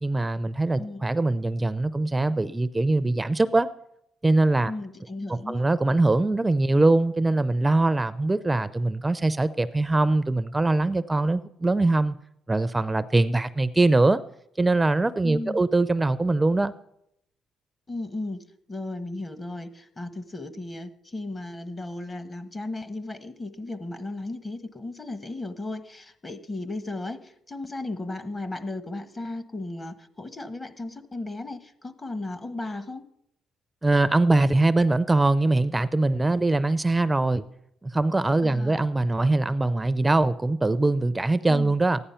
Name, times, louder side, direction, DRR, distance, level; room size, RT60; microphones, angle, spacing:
voice 1, 0.0-3.7 4.2-4.7 5.3-12.2 12.5-14.2 14.6-16.7 33.8-37.4 37.8-42.0, right 2 dB, 15° right, 14 dB, 0.5 m, -22 dB
voice 2, 4.6-5.7 15.2-15.6 17.9-33.0 38.4-38.9 41.5-41.8, left 2 dB, 25° left, 11 dB, 1.2 m, -35 dB
14.5 x 10.0 x 5.7 m, 0.77 s
cardioid pair, 90°, 0 cm